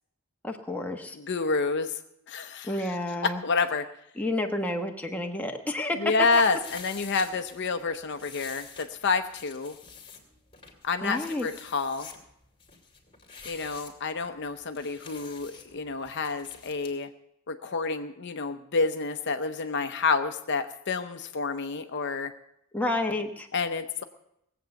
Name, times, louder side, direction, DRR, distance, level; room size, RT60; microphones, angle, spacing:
voice 1, 0.4-1.2 2.6-3.4 4.2-6.1 11.0-11.5 22.7-23.5, left 2 dB, 5° left, 2 dB, 1.2 m, -30 dB
voice 2, 1.1-2.0 2.3-2.9 3.2-3.9 6.0-9.8 10.8-12.1 13.4-17.1 17.5-22.3 23.5-24.0, left 4 dB, 55° left, 8 dB, 0.7 m, -29 dB
sound 1, 6.3-16.9, left 6 dB, 25° left, 2.3 m, -48 dB
19.5 x 8.0 x 7.0 m, 0.80 s
head